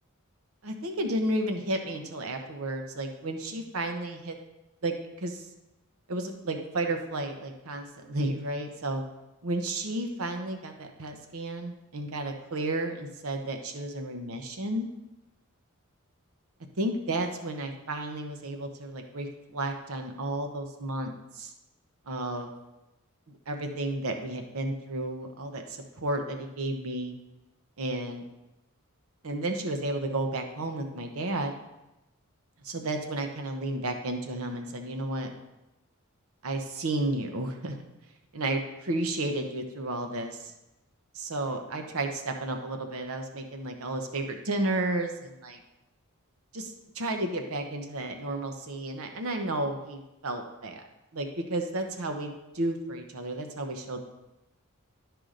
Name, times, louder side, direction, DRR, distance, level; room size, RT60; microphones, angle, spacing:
voice 1, 0.6-4.4 4.8-5.5 6.1-9.0 9.4-14.9 16.8-21.5 22.1-22.5 23.5-27.1 27.8-28.2 29.2-31.6 32.6-35.3 36.4-37.8 38.3-38.6 38.9-40.5 41.1-45.6 46.5-50.8 51.1-54.0, right 2 dB, 70° right, 5 dB, 0.9 m, -32 dB
11.5 x 4.8 x 3.8 m, 0.94 s
head